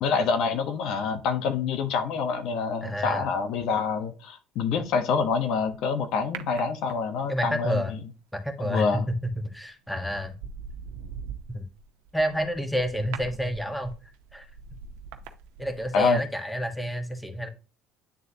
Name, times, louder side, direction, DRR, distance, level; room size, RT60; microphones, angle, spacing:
voice 1, 0.0-8.0 8.6-9.1 15.9-16.2, left 5 dB, 65° left, 0.9 m, -26 dB
voice 2, 2.8-3.3 7.3-7.9 8.3-10.3 11.5-11.6 12.1-13.9 14.3-14.5 15.6-17.5, equal, 5° left, 1.2 m, -29 dB
sound 1, 6.3-7.4 9.2-9.5 10.0-16.2 16.5-16.6, right 6 dB, 90° right, 0.7 m, -42 dB
9.9 x 3.8 x 2.8 m
cardioid pair, 120°, 0 cm